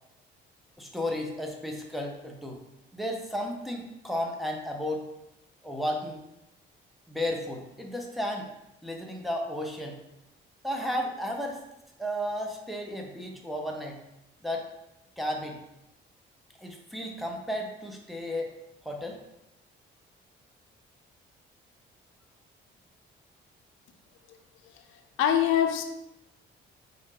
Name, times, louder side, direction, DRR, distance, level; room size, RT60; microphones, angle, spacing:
voice 1, 0.8-2.6 2.9-5.1 5.6-6.2 7.1-8.5 8.8-10.0 10.6-11.6 12.0-14.0 14.4-14.6 15.2-15.6 16.6-18.5 18.8-19.2, equal, ahead, 1 dB, 0.8 m, -33 dB
voice 2, 25.2-25.8, left 10 dB, 90° left, 6 dB, 0.5 m, -23 dB
4.2 x 2.6 x 3.7 m, 0.88 s
cardioid pair, 90°, 20 cm